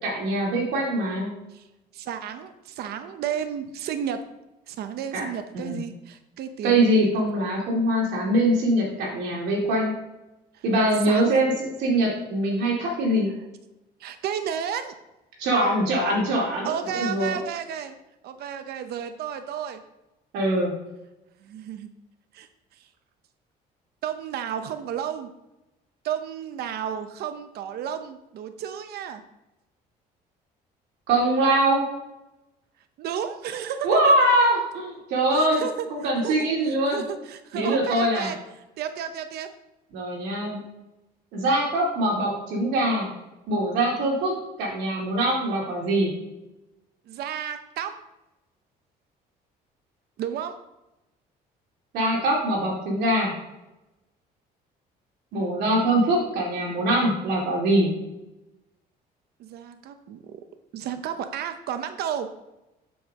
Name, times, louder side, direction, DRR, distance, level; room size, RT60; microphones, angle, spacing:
voice 1, 0.0-1.3 5.1-5.3 5.5-5.8 6.6-9.9 10.6-13.3 15.4-17.4 20.3-20.7 31.1-31.8 33.8-35.6 35.9-37.0 37.5-38.3 39.9-40.6 41.3-43.1 43.5-44.3 44.6-46.1 51.9-53.3 55.3-57.9, right 1 dB, 90° right, -2 dB, 2.6 m, -23 dB
voice 2, 1.9-4.2 4.7-6.8 10.5-10.6 11.0-11.4 14.0-14.9 16.6-17.9 18.2-19.8 21.4-21.9 22.3-22.5 22.8-22.9 24.0-25.3 26.0-29.2 33.0-34.1 35.3-35.9 36.2-38.4 38.8-39.5 47.1-47.9 50.2-50.5 59.4-60.4 60.7-62.3, right 8 dB, 70° right, 9 dB, 0.8 m, -32 dB
7.9 x 7.1 x 3.7 m, 0.96 s
cardioid pair, 110°, 17 cm